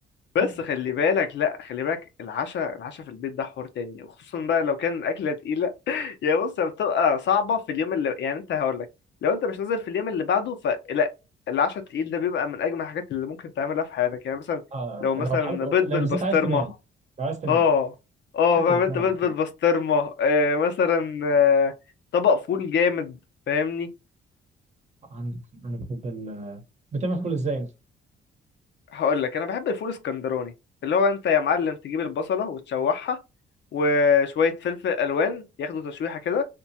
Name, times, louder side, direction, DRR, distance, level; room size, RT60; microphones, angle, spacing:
voice 1, 0.3-4.1 4.3-8.9 9.2-11.1 11.5-14.6 15.0-16.6 17.5-17.9 18.3-21.7 22.1-23.2 23.5-23.9 28.9-30.5 30.8-33.2 33.7-36.5, left 6 dB, 65° left, 0.6 m, -24 dB
voice 2, 14.7-16.7 17.2-17.6 18.7-19.3 25.1-26.6 26.9-27.7, right 3 dB, 35° right, 0.9 m, -30 dB
2.8 x 2.2 x 2.7 m
cardioid pair, 90°, 20 cm